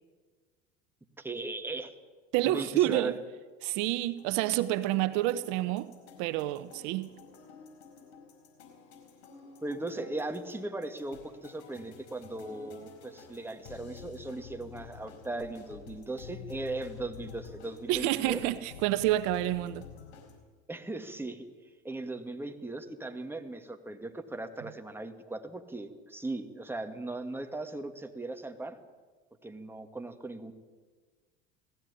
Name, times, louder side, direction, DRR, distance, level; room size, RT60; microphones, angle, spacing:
voice 1, 1.2-1.9 2.4-3.2 9.6-18.4 20.7-21.5 21.8-28.8 29.4-30.5, right 2 dB, 5° right, 2.1 m, -38 dB
voice 2, 2.3-3.2 3.6-5.9 6.2-7.1 17.9-19.9, right 15 dB, 65° right, 1.0 m, -28 dB
sound 1, 4.1-20.4, left 7 dB, 85° left, 5.1 m, -50 dB
19.0 x 15.0 x 9.9 m
supercardioid pair, 100°, 32 cm